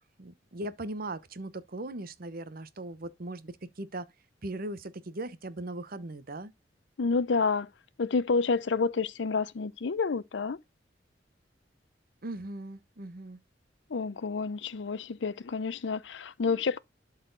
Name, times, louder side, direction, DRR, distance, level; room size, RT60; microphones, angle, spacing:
voice 1, 0.0-4.1 4.4-6.5 12.2-13.4, right 2 dB, 50° right, 0.9 m, -39 dB
voice 2, 7.0-7.7 8.0-10.6 13.9-16.8, left 4 dB, 70° left, 0.6 m, -29 dB
12.0 x 4.2 x 4.0 m
head